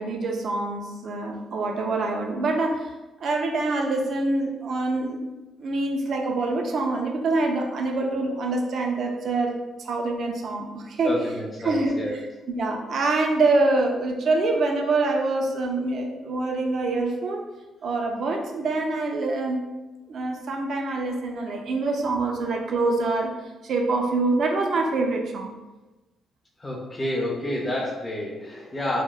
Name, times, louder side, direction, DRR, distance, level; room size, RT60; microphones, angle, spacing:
voice 1, 0.0-2.9 3.2-5.2 5.6-11.3 11.6-17.4 17.8-19.7 20.1-23.3 23.6-25.5, right 3 dB, 60° right, 2 dB, 0.4 m, -25 dB
voice 2, 11.0-12.2 26.6-29.0, left 1 dB, 20° left, -4 dB, 0.4 m, -29 dB
2.8 x 2.0 x 2.2 m, 1.1 s
cardioid pair, 90°, 0 cm